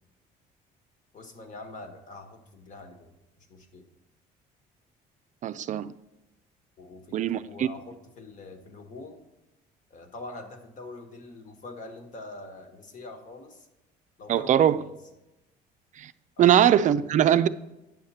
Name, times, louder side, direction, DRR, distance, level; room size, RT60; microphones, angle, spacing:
voice 1, 1.1-3.1 3.5-3.9 6.8-9.2 9.9-13.7 14.2-14.9 16.4-16.6, left 2 dB, 50° left, 1.5 m, -44 dB
voice 2, 5.4-5.9 7.1-7.7 14.3-14.8 16.0-16.1 16.4-17.5, right 10 dB, 45° right, 0.4 m, -21 dB
9.6 x 6.5 x 4.2 m
cardioid pair, 110°, 17 cm